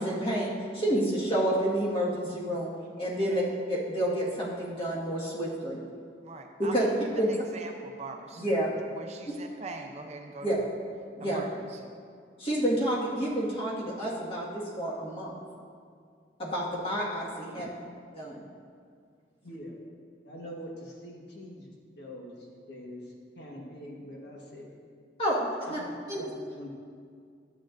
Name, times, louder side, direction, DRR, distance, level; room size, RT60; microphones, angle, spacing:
voice 1, 0.0-2.7 3.0-3.4 3.7-5.8 6.6-6.8 7.2-7.3 8.3-8.7 10.4-10.6 11.2-11.4 12.4-15.3 16.4-17.7 18.2-18.4 25.2-25.8 26.1-26.2, equal, 30° left, -6 dB, 1.7 m, -29 dB
voice 2, 6.2-8.6 8.9-10.6 11.2-11.9, right 2 dB, 35° right, 3 dB, 0.6 m, -42 dB
voice 3, 19.4-19.8 20.2-24.7 25.7-25.8 26.1-26.7, equal, 70° left, -2 dB, 1.4 m, -44 dB
12.0 x 8.3 x 2.6 m, 2.2 s
head